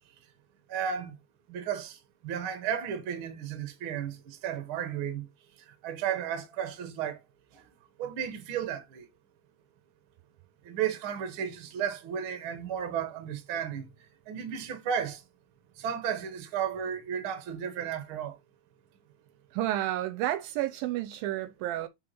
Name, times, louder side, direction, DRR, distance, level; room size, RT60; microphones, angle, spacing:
voice 1, 0.7-1.2 1.5-5.3 5.6-7.2 7.5-7.7 8.0-9.1 10.6-15.2 15.8-18.4, right 8 dB, 65° right, 1.3 m, -34 dB
voice 2, 19.5-21.9, right 14 dB, 80° right, 2.2 m, -31 dB
7.2 x 5.1 x 3.1 m
omnidirectional pair, 4.4 m